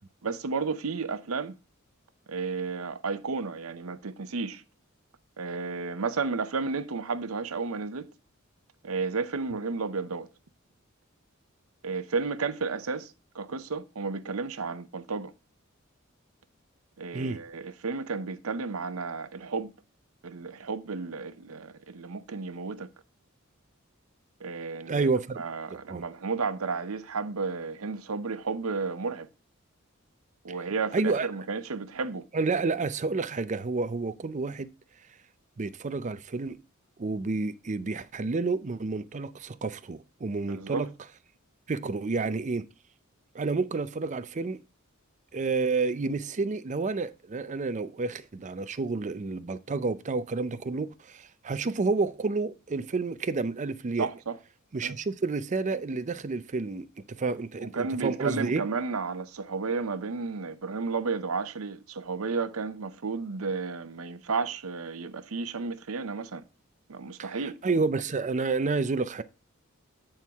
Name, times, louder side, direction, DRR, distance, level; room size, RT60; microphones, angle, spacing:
voice 1, 0.2-1.5 2.3-4.6 5.4-8.1 8.8-10.3 11.8-15.3 17.0-19.7 20.2-22.9 24.4-25.1 25.4-29.3 30.4-32.2 40.5-40.9 54.0-54.4 54.8-55.0 57.6-66.4 66.9-67.6, right 4 dB, 85° right, 0.7 m, -32 dB
voice 2, 24.9-25.4 25.7-26.0 30.9-31.3 32.3-34.7 35.6-36.6 37.0-40.9 41.7-42.7 43.3-44.6 45.3-54.1 54.7-58.6 67.2-67.3 67.6-69.2, right 3 dB, 35° right, 0.5 m, -30 dB
8.7 x 4.5 x 3.5 m
head